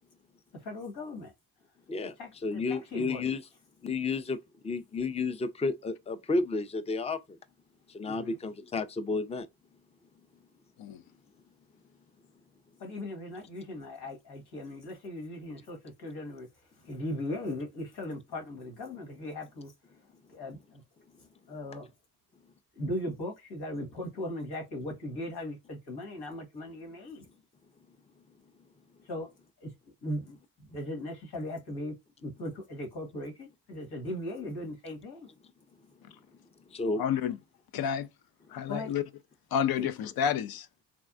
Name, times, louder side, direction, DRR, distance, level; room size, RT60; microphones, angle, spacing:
voice 1, 0.5-1.3 2.2-3.3 8.1-8.4 12.8-16.5 16.8-19.7 20.3-20.8 21.5-21.9 22.7-27.3 29.0-29.3 29.6-29.7 30.0-31.9 32.2-35.3 38.7-38.9 39.8-39.9, left 1 dB, 85° left, 1.5 m, -38 dB
voice 2, 2.4-3.4 3.8-4.4 4.6-7.4 7.9-9.5 36.7-37.0, left 3 dB, 15° left, 0.4 m, -31 dB
voice 3, 37.0-37.4 37.7-38.1 38.5-39.0 39.5-40.7, left 8 dB, 70° left, 0.5 m, -30 dB
3.5 x 2.2 x 2.4 m
cardioid pair, 70°, 38 cm